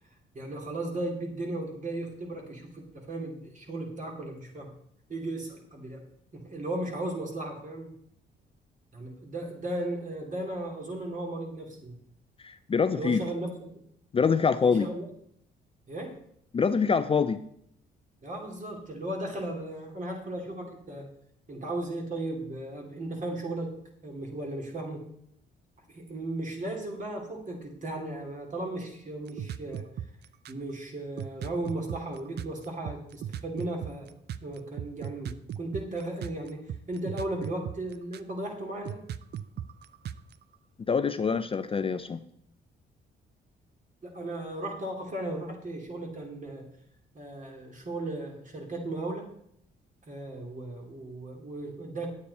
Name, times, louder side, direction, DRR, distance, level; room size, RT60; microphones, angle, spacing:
voice 1, 0.3-4.7 5.1-6.0 6.3-8.0 8.9-12.0 12.9-13.8 14.6-15.0 15.9-16.2 18.2-21.1 21.5-23.8 24.0-25.1 25.9-29.9 30.5-34.1 34.4-39.0 44.0-46.7 47.1-49.3 50.1-52.1, right 1 dB, 40° right, 1 dB, 2.8 m, -36 dB
voice 2, 12.4-13.2 14.1-14.9 16.5-17.4 40.9-42.2, left 5 dB, 30° left, 10 dB, 0.5 m, -25 dB
sound 1, 29.3-30.7 31.2-38.4 38.8-40.5, right 10 dB, 55° right, 0.5 m, -37 dB
9.8 x 8.4 x 4.2 m, 0.72 s
cardioid pair, 90°, 20 cm